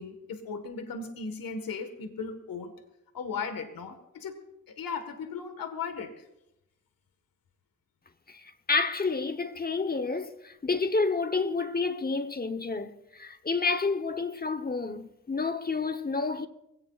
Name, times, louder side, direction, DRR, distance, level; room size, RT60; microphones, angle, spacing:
voice 1, 0.0-2.7 3.1-4.4 4.7-6.1, left 5 dB, 80° left, 1.7 m, -37 dB
voice 2, 8.3-16.5, left 4 dB, 25° left, 1.0 m, -29 dB
24.0 x 17.5 x 2.5 m
cardioid pair, 75°, 34 cm